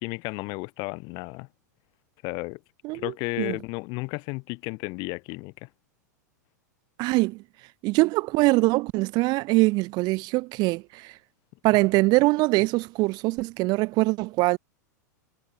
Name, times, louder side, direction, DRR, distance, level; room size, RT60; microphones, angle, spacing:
voice 1, 0.0-1.5 2.2-2.6 2.9-5.7, left 28 dB, 50° left, 1.6 m, -33 dB
voice 2, 7.0-7.4 7.8-11.1 11.6-14.6, right 22 dB, 45° right, 1.8 m, -23 dB
hypercardioid pair, 110°, 10 cm